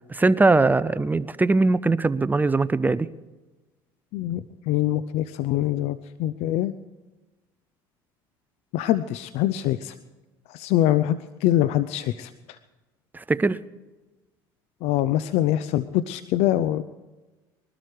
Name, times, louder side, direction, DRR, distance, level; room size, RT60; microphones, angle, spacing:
voice 1, 0.1-3.1 13.1-13.6, right 3 dB, 15° right, 16 dB, 0.6 m, -21 dB
voice 2, 4.1-6.7 8.7-9.9 10.5-12.3 14.8-16.8, left 13 dB, 70° left, 14 dB, 0.6 m, -24 dB
21.0 x 12.5 x 4.9 m, 1.2 s
supercardioid pair, 80°, 12 cm